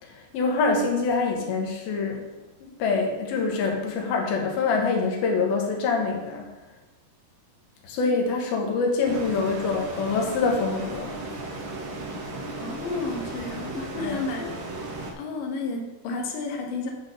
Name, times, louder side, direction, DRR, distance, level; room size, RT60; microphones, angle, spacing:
voice 1, 0.0-2.2 2.6-6.4 7.8-11.2 14.0-14.2, left 4 dB, 85° left, 0 dB, 3.3 m, -25 dB
sound 1, 9.0-15.1, right 2 dB, 50° right, 1.7 m, -35 dB
voice 2, 12.6-14.5 15.2-16.9, left 3 dB, 70° left, 1 dB, 2.8 m, -31 dB
10.5 x 4.0 x 6.8 m, 1.1 s
omnidirectional pair, 4.2 m